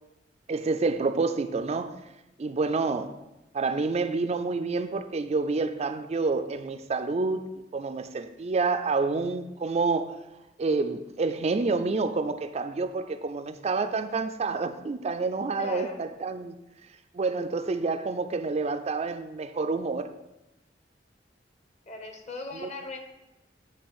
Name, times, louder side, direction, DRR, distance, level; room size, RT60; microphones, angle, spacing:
voice 1, 0.5-1.9 2.4-3.1 3.5-7.4 7.7-10.2 10.6-16.5 17.1-20.1 22.6-22.7, right 3 dB, 35° right, 8 dB, 0.4 m, -28 dB
voice 2, 15.6-16.0 21.9-23.0, left 2 dB, 40° left, 4 dB, 1.1 m, -38 dB
9.5 x 3.3 x 6.3 m, 0.96 s
head